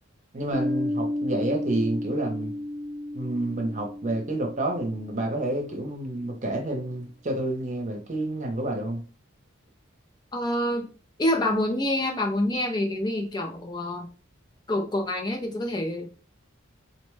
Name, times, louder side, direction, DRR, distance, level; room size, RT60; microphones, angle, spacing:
voice 1, 0.3-2.5 3.1-9.0, right 1 dB, 35° right, 0.7 m, -29 dB
Piano, 0.5-5.9, left 1 dB, 10° right, 1.0 m, -33 dB
voice 2, 10.3-10.9 11.2-14.1 14.7-16.1, left 1 dB, 20° left, 0.4 m, -27 dB
4.1 x 2.2 x 3.1 m
head